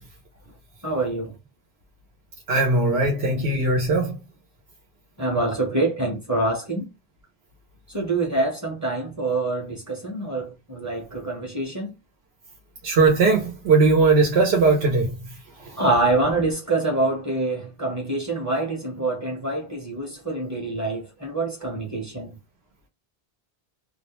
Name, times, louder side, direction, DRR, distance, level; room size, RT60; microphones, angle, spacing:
voice 1, 0.8-1.3 3.0-3.1 5.2-6.9 7.9-11.9 15.8-22.4, right 2 dB, 20° right, 0.7 m, -26 dB
voice 2, 2.5-4.2 12.8-15.1 15.6-15.8, right 3 dB, 90° right, 0.9 m, -19 dB
2.3 x 2.1 x 2.9 m
omnidirectional pair, 1.0 m